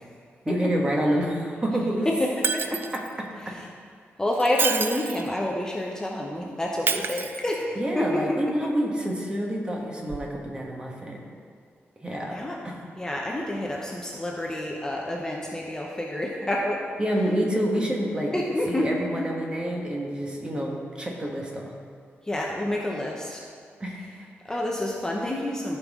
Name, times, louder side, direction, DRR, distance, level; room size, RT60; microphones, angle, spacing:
voice 1, 0.4-2.1 2.7-3.1 3.5-3.6 7.8-11.2 12.0-12.4 12.6-12.8 17.0-18.3 18.7-21.7 23.8-24.3, right 1 dB, 20° right, -1 dB, 1.3 m, -28 dB
voice 2, 2.0-2.8 3.4-3.7 4.2-8.7 12.3-12.6 13.0-16.9 18.3-19.3 22.2-23.4 24.5-25.8, left 1 dB, 15° left, -2 dB, 0.8 m, -28 dB
Shatter, 2.4-3.1 4.3-5.3 6.9-7.9 10.1-10.2, right 5 dB, 50° right, 0.4 m, -28 dB
14.5 x 5.3 x 3.7 m, 2.1 s
wide cardioid pair, 140°, 4 cm